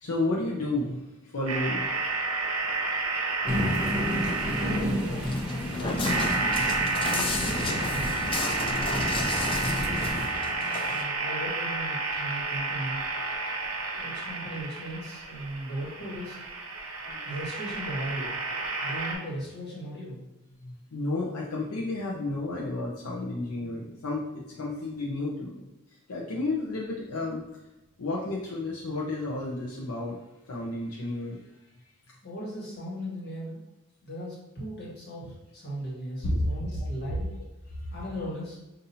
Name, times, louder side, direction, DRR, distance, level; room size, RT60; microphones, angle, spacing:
voice 1, 0.0-1.9 5.7-6.0 17.1-17.2 20.6-25.7 26.1-27.4 28.0-30.2 30.5-31.4 36.2-36.4 36.7-36.9 37.2-37.3 37.7-37.8, left 2 dB, 75° left, -4 dB, 0.7 m, -32 dB
sound 1, 1.5-19.1, right 3 dB, 70° right, 0.8 m, -31 dB
sound 2, 3.4-10.3, left 1 dB, 5° right, 0.7 m, -31 dB
voice 2, 3.7-5.3 6.4-8.2 10.7-13.0 14.0-16.4 17.2-18.4 18.8-20.2 32.2-33.6 34.0-37.3 37.9-38.6, right 1 dB, 50° left, -5 dB, 1.4 m, -38 dB
Walk footsteps, 5.2-11.0, left 3 dB, 25° left, 0.3 m, -34 dB
5.5 x 2.6 x 2.7 m, 1.0 s
head